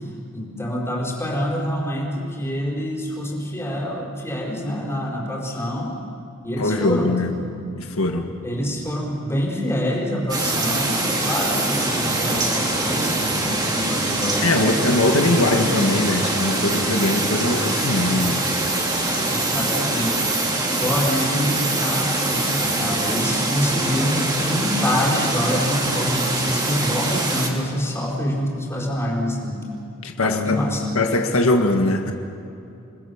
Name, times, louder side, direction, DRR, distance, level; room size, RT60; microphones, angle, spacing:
voice 1, 0.3-5.9 6.4-7.1 8.4-15.7 19.3-20.2 20.8-29.6 30.2-30.8, equal, 15° left, -3 dB, 4.8 m, -26 dB
voice 2, 6.6-7.3 7.7-8.3 14.4-18.4 30.0-30.6 30.9-32.1, left 2 dB, 85° left, 4 dB, 1.7 m, -21 dB
sound 1, 10.3-27.5, right 2 dB, 20° right, 3.2 m, -23 dB
28.5 x 20.5 x 7.2 m, 2.7 s
head